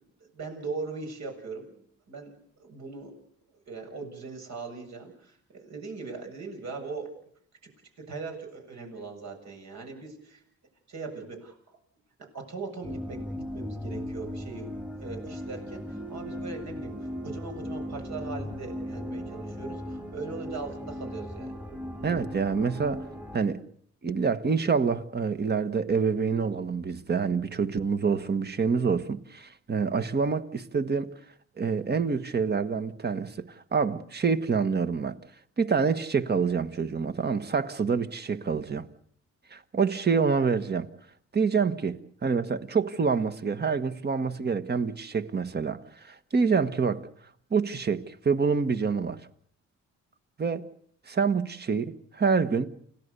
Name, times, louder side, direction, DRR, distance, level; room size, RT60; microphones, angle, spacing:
voice 1, 0.3-1.8 2.1-2.3 2.6-3.1 3.7-7.1 8.0-10.4 10.9-11.6 12.3-14.7 15.0-21.5, right 4 dB, 65° right, 7.4 m, -39 dB
sound 1, 12.8-23.4, equal, 5° right, 1.8 m, -37 dB
voice 2, 22.0-23.0 23.3-23.6 24.0-31.1 31.6-35.2 35.6-38.9 39.5-40.9 41.3-47.1 47.5-49.2 50.4-50.7 51.1-52.7, right 5 dB, 35° right, 1.5 m, -27 dB
29.0 x 17.5 x 6.9 m
cardioid pair, 90°, 30 cm